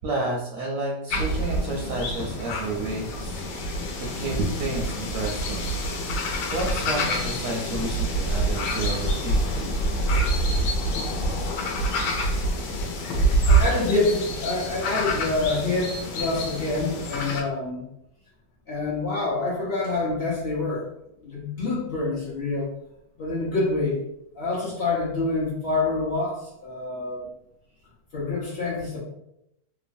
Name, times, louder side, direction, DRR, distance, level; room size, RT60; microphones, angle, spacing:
voice 1, 0.0-3.5 4.0-6.1 6.5-9.5, right 2 dB, 70° right, -2 dB, 0.8 m, -31 dB
sound 1, 1.1-17.4, right 1 dB, 80° left, 1.2 m, -26 dB
voice 2, 12.1-12.5 13.5-17.9 18.7-20.9 21.2-22.7 23.2-24.0 24.3-27.3 28.1-29.0, left 3 dB, 55° left, -6 dB, 0.6 m, -27 dB
3.0 x 2.1 x 2.5 m, 0.81 s
omnidirectional pair, 1.8 m